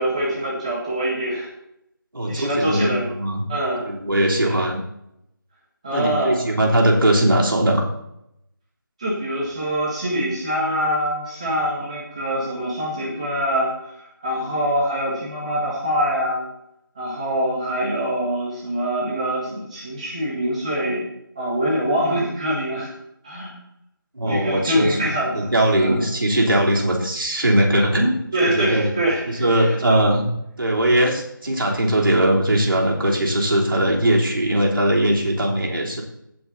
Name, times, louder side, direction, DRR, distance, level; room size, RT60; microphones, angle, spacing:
voice 1, 0.0-1.5 2.3-3.1 3.5-3.8 4.4-4.5 5.8-6.4 9.0-13.7 14.2-16.5 16.9-21.1 21.3-22.9 23.2-23.6 24.3-26.0 28.3-30.0, equal, 20° right, -6 dB, 1.6 m, -24 dB
voice 2, 2.1-3.5 3.9-4.8 5.9-7.8 24.1-25.0 25.3-28.9 29.3-30.3 30.6-36.0, right 1 dB, 70° right, -2 dB, 3.4 m, -20 dB
16.5 x 6.0 x 4.1 m, 0.80 s
figure-of-eight pair, 175°, 12 cm